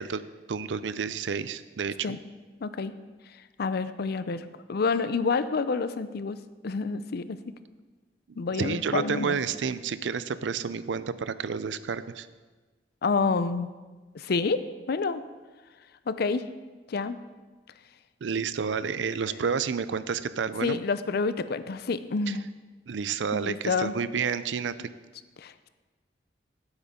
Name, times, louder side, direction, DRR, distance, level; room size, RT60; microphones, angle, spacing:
voice 1, 0.0-2.2 8.6-12.3 18.2-20.8 22.3-22.4 22.9-24.9, right 6 dB, 85° right, 14 dB, 0.5 m, -30 dB
voice 2, 2.6-2.9 3.6-6.4 6.6-7.4 8.4-9.4 13.0-13.7 14.1-14.6 14.9-15.2 16.1-16.4 16.9-17.2 20.6-22.5 23.3-23.9 25.4-25.7, left 4 dB, 60° left, 13 dB, 0.5 m, -28 dB
14.5 x 8.2 x 3.7 m, 1.3 s
head